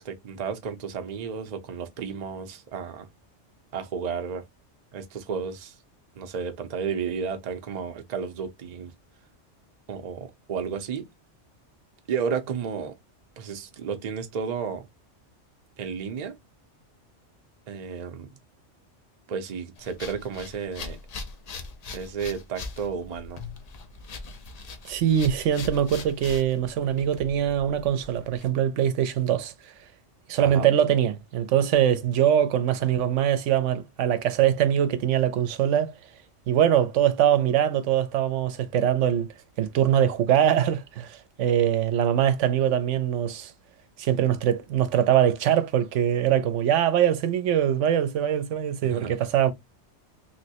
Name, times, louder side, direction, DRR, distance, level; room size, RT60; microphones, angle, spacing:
voice 1, 0.0-3.1 3.7-4.4 4.9-5.8 6.2-8.9 9.9-11.1 12.1-13.0 13.4-14.9 15.8-16.4 17.7-18.3 19.3-21.0 21.9-23.4 30.4-30.7 48.8-49.1, right 6 dB, 45° right, 0.6 m, -32 dB
sound 1, 19.8-28.4, left 3 dB, 50° left, 0.4 m, -41 dB
voice 2, 24.9-29.5 30.3-35.9 36.5-39.3 39.6-43.5 44.0-49.5, right 10 dB, 80° right, 0.9 m, -23 dB
3.0 x 3.0 x 2.7 m
omnidirectional pair, 1.3 m